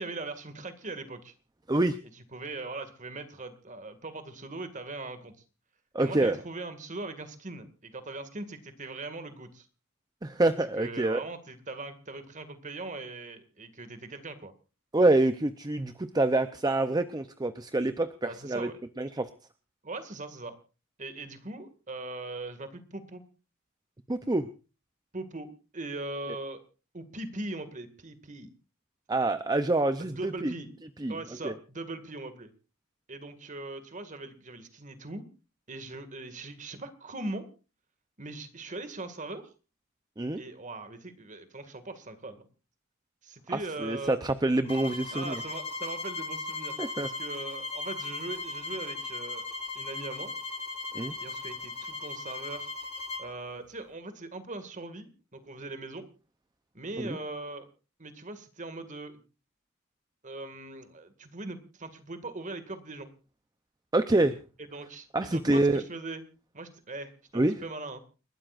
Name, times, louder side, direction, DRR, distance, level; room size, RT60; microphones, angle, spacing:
voice 1, 0.0-1.3 2.3-5.3 6.0-9.7 10.8-14.5 18.2-18.8 19.8-20.6 21.0-23.2 25.1-26.6 26.9-28.5 30.0-30.7 31.1-32.5 33.1-35.3 35.7-37.5 38.2-39.5 40.4-42.5 43.2-44.2 45.1-49.5 49.7-50.3 51.2-52.7 53.2-56.1 56.7-57.7 58.0-59.2 60.2-63.1 64.7-66.2 66.5-68.0, right 2 dB, 35° right, 9 dB, 2.0 m, -40 dB
voice 2, 5.9-6.4 10.2-11.2 14.9-18.7 19.0-19.3 24.1-24.5 29.1-30.5 31.0-31.2 31.4-31.5 40.2-40.4 43.5-45.4 46.8-47.1 50.9-51.1 57.0-57.2 63.9-64.4 65.1-65.8 67.3-67.6, right 2 dB, 20° right, 10 dB, 0.6 m, -26 dB
sound 1, 44.7-53.3, left 3 dB, 25° left, 1.8 m, -37 dB
29.5 x 12.5 x 2.5 m, 0.33 s
head